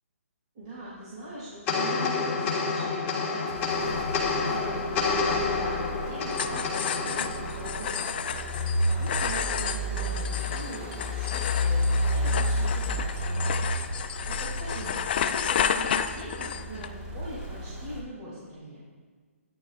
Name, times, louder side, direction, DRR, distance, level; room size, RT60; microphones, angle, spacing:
voice 1, 0.5-18.8, right 1 dB, 30° right, -8 dB, 2.5 m, -41 dB
sound 1, 1.7-8.3, left 4 dB, 20° left, 1.5 m, -29 dB
sound 2, 3.5-18.0, equal, 10° right, 1.2 m, -32 dB
sound 3, 6.3-16.9, left 8 dB, 40° left, 0.4 m, -31 dB
13.5 x 9.6 x 2.4 m, 1.5 s
hypercardioid pair, 155°, 8 cm